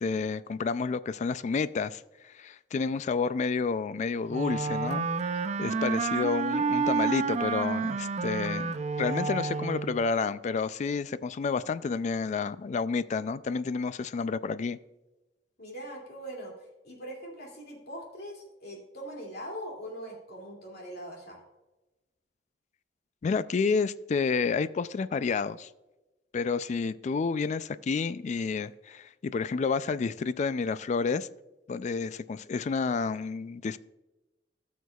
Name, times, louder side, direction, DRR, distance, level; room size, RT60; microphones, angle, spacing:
voice 1, 0.0-14.8 23.2-25.7 26.3-31.3 31.7-33.8, left 5 dB, 40° left, 0.3 m, -30 dB
Wind instrument woodwind instrument, 4.3-10.0, right 4 dB, 40° right, 0.4 m, -30 dB
voice 2, 15.6-21.4, equal, 65° left, 2.4 m, -42 dB
15.0 x 6.5 x 2.3 m
head